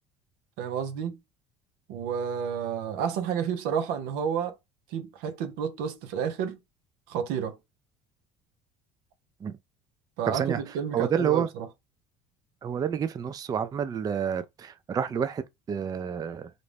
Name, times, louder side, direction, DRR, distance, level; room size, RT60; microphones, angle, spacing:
voice 1, 0.6-1.2 1.9-4.6 4.9-6.6 7.1-7.6 10.2-11.7, right 7 dB, 75° right, 0.5 m, -30 dB
voice 2, 10.3-10.6 10.9-11.5 12.6-16.5, right 8 dB, 25° right, 0.3 m, -29 dB
2.5 x 2.1 x 3.2 m
supercardioid pair, 95°, 16 cm